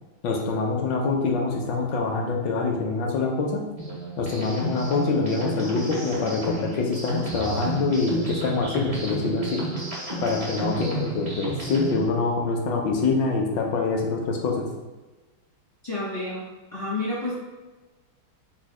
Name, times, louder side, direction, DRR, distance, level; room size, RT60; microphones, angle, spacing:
voice 1, 0.2-3.6 4.2-9.6 10.2-14.6, left 4 dB, 70° left, 1 dB, 1.2 m, -25 dB
sound 1, 3.8-12.1, right 2 dB, 60° right, 0.3 m, -32 dB
voice 2, 15.8-16.4 16.7-17.3, left 2 dB, 40° left, -8 dB, 0.5 m, -29 dB
4.1 x 2.3 x 4.6 m, 1.2 s
omnidirectional pair, 2.2 m